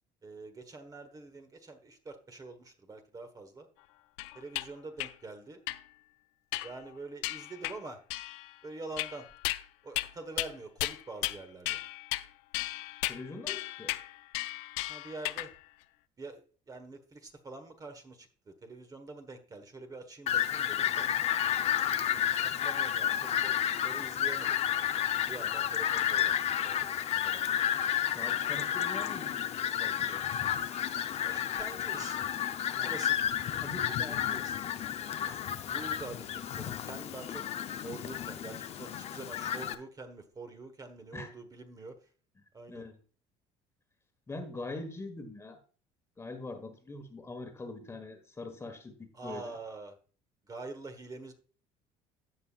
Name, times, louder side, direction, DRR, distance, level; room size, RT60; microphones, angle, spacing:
voice 1, 0.2-3.7 4.3-5.6 6.6-8.0 8.6-9.3 9.8-11.8 14.9-15.5 16.2-16.4 16.7-21.1 22.5-24.6 25.3-26.9 27.2-27.4 31.2-32.2 32.8-33.2 34.0-34.5 35.7-37.5 37.8-42.0 42.5-42.9 49.1-50.0 50.5-51.3, right 3 dB, 25° right, 7 dB, 1.3 m, -45 dB
sound 1, 4.2-4.7 5.0-5.1 5.7-5.8 6.5-6.9 7.2-7.8 8.1-8.5 9.0-9.6 10.0-10.1 10.4-10.5 10.8-11.4 11.7-12.3 12.5-15.5, left 18 dB, 90° left, 0.4 m, -35 dB
voice 2, 13.1-14.0 21.8-22.3 28.1-29.5 29.8-30.2 32.7-33.0 33.6-34.2 35.2-35.5 41.1-41.3 42.7-43.0 44.3-45.6 46.2-49.5, left 2 dB, 20° left, 6 dB, 1.4 m, -43 dB
Fowl, 20.3-39.7, left 10 dB, 50° left, 0.7 m, -31 dB
16.0 x 5.6 x 2.4 m, 0.39 s
supercardioid pair, 100°, 14 cm